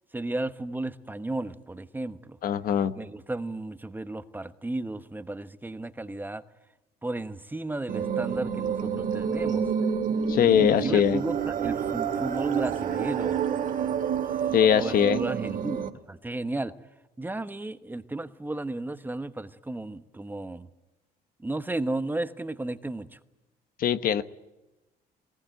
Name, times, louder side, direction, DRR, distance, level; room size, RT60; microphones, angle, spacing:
voice 1, 0.1-2.4 3.0-6.4 7.0-9.7 10.4-13.4 14.8-16.7 17.2-20.7 21.4-23.2, right 2 dB, 10° right, 11 dB, 1.0 m, -34 dB
voice 2, 2.4-2.9 10.3-11.2 14.5-15.2 23.8-24.2, left 9 dB, 60° left, 12 dB, 1.2 m, -22 dB
sound 1, 7.9-15.9, right 7 dB, 55° right, 2.0 m, -28 dB
20.0 x 19.5 x 9.1 m, 0.99 s
cardioid pair, 110°, 17 cm